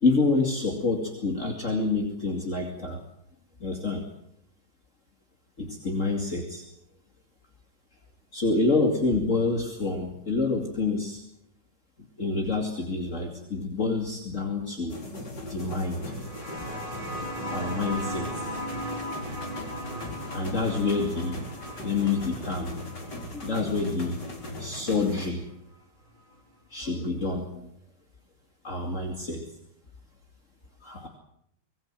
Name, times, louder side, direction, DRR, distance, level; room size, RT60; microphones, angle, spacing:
voice 1, 0.0-3.0 3.6-4.1 5.6-6.6 8.3-11.2 12.2-15.0 15.4-16.1 17.5-18.5 20.3-21.4 21.8-22.7 23.3-24.3 24.6-25.5 26.7-27.7 28.6-29.4 30.8-31.1, left 3 dB, 45° left, 2 dB, 2.9 m, -27 dB
sound 1, 14.9-25.3, left 1 dB, 75° left, 4.7 m, -39 dB
sound 2, 16.0-25.2 26.4-26.5, equal, 25° right, 4.0 m, -38 dB
25.5 x 20.0 x 7.6 m, 0.74 s
omnidirectional pair, 1.9 m